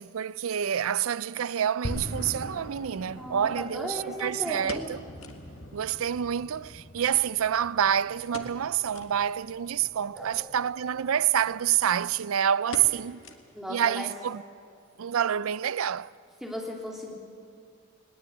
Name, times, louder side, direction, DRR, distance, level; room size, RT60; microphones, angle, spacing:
voice 1, 0.0-5.0 5.7-13.2 13.7-14.4 15.0-16.1, right 9 dB, 80° right, 0.4 m, -27 dB
sound 1, 1.8-12.1, equal, 60° left, 3.0 m, -43 dB
sound 2, 2.1-2.2 4.2-5.5 5.8-5.9 6.2-6.3 7.0-7.8 8.3-8.7 8.9-9.2 9.7-9.8 10.7-11.0 11.4-11.5 11.8-12.2 12.7-13.8 14.1-14.2 14.8-15.1 15.4-15.5, left 3 dB, 80° left, 1.7 m, -43 dB
voice 2, 3.2-4.9 10.1-10.4 13.5-14.1 16.4-17.1, equal, ahead, 3.0 m, -36 dB
20.5 x 18.5 x 8.5 m
head